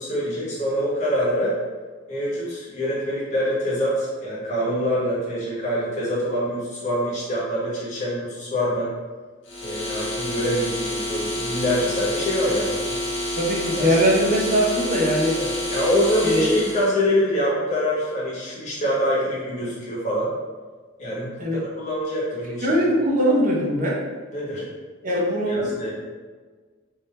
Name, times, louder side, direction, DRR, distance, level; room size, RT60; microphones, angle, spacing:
voice 1, 0.0-1.6 2.1-8.9 9.6-13.0 13.8-13.9 15.4-20.3 21.0-21.3 21.8-22.7 24.3-24.7 25.4-25.9, equal, 40° left, -7 dB, 1.3 m, -25 dB
sound 1, 9.5-16.9, left 1 dB, 65° left, 0.9 m, -28 dB
voice 2, 13.4-15.4 16.2-16.6 21.4-21.6 22.6-24.1 25.0-25.9, equal, 45° right, -3 dB, 0.7 m, -21 dB
3.5 x 2.8 x 3.3 m, 1.4 s
head